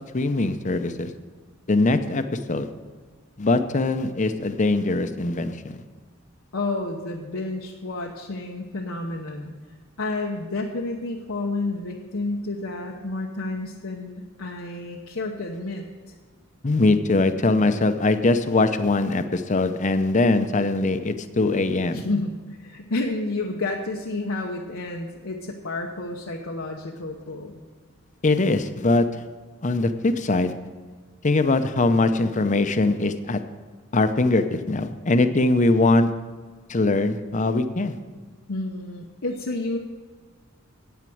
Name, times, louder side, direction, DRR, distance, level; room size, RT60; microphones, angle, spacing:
voice 1, 0.1-1.1 1.7-2.7 3.4-5.8 16.6-22.0 28.2-29.1 29.6-30.5 31.2-33.4 33.9-36.1 36.7-38.0, left 2 dB, 35° left, 10 dB, 0.7 m, -21 dB
voice 2, 6.5-9.5 10.0-15.9 21.9-27.6 38.5-39.8, left 2 dB, 85° left, 0 dB, 0.9 m, -30 dB
9.2 x 8.9 x 7.7 m, 1.5 s
head